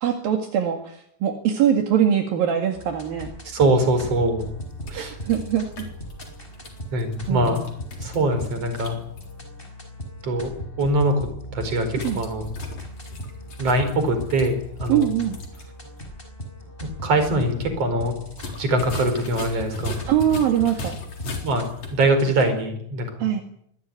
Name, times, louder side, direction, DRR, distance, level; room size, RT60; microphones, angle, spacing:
voice 1, 0.0-3.3 4.9-5.9 7.3-7.6 12.0-12.2 14.9-15.4 20.1-21.0 23.2-23.4, right 9 dB, 70° right, 4 dB, 3.7 m, -22 dB
Western Gaming Music, 2.7-22.5, equal, 15° left, 5.5 m, -38 dB
voice 2, 3.5-4.5 4.9-5.1 6.9-7.6 8.0-9.0 10.2-12.5 13.6-15.1 16.8-18.2 18.6-20.0 21.4-23.3, right 1 dB, 40° right, 8 dB, 5.5 m, -23 dB
sound 1, 4.6-9.3 11.9-15.7 16.0-16.1 18.3-22.0, left 3 dB, 45° left, 4.9 m, -38 dB
23.5 x 18.0 x 9.7 m, 0.71 s
omnidirectional pair, 4.4 m